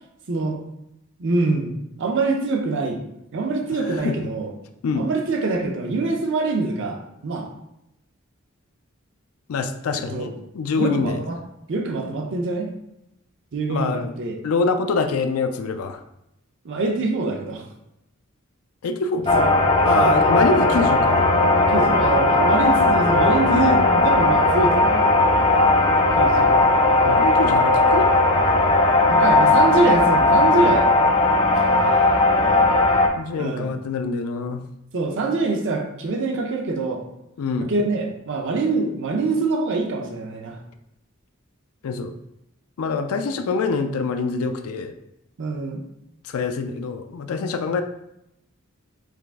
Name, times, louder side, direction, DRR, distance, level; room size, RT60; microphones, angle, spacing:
voice 1, 0.3-0.6 1.2-3.0 3.3-4.5 4.9-7.5 10.1-10.3 10.7-11.4 11.7-12.7 13.5-14.4 16.6-17.6 19.3-19.5 19.9-20.4 21.7-25.2 26.1-26.6 29.1-30.9 31.5-32.7 33.4-33.7 34.9-37.0 37.7-40.6 45.4-45.8, right 3 dB, 60° right, 2 dB, 0.6 m, -25 dB
voice 2, 9.5-11.2 13.7-14.1 14.4-16.0 18.8-19.3 19.8-21.2 27.0-28.1 33.2-34.6 37.4-37.7 41.8-42.1 42.8-44.9 46.2-47.8, left 4 dB, 85° left, 7 dB, 0.4 m, -25 dB
sound 1, 19.3-33.1, left 2 dB, 25° left, 0.4 m, -17 dB
4.8 x 3.5 x 2.5 m, 0.83 s
head